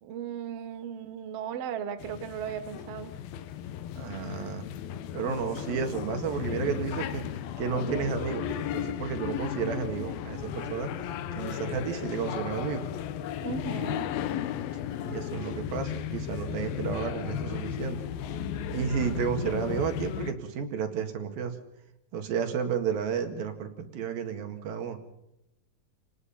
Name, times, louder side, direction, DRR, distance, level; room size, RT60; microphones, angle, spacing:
voice 1, 0.0-3.1 13.4-14.1, right 8 dB, 60° right, 9 dB, 1.8 m, -36 dB
sound 1, 2.0-20.3, left 9 dB, 85° left, 2.8 m, -35 dB
voice 2, 4.0-4.7 5.1-7.3 7.6-10.9 11.3-12.9 15.0-18.0 18.7-21.5 22.1-25.0, right 7 dB, 80° right, 6 dB, 3.7 m, -32 dB
28.5 x 19.5 x 5.7 m, 0.84 s
omnidirectional pair, 4.1 m